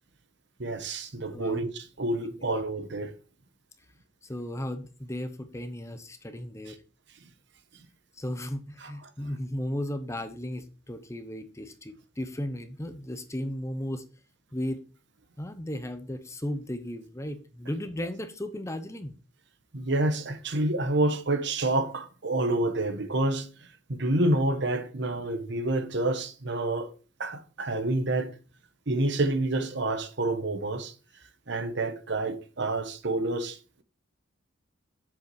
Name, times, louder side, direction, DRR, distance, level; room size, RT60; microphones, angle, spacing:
voice 1, 0.6-3.1 6.7-6.8 8.8-8.9 19.7-23.5 23.9-26.9 27.2-28.4 28.9-30.9 31.5-33.8, right 2 dB, 55° right, 1.2 m, -28 dB
voice 2, 4.2-6.8 8.2-14.0 14.5-14.8 15.4-19.1, left 1 dB, 15° left, 0.8 m, -35 dB
8.0 x 7.4 x 4.7 m
head